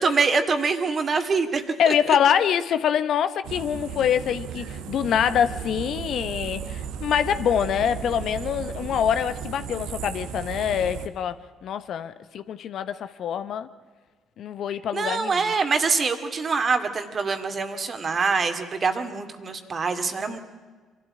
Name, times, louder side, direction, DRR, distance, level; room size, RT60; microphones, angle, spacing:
voice 1, 0.0-2.2 14.9-20.4, right 4 dB, 45° right, 7 dB, 2.3 m, -25 dB
voice 2, 1.8-11.4 11.6-13.7 14.4-15.4, left 8 dB, 65° left, 12 dB, 1.0 m, -25 dB
sound 1, 3.4-11.1, right 8 dB, 75° right, 1.3 m, -35 dB
24.0 x 13.0 x 9.7 m, 1.4 s
hypercardioid pair, 55°, 0 cm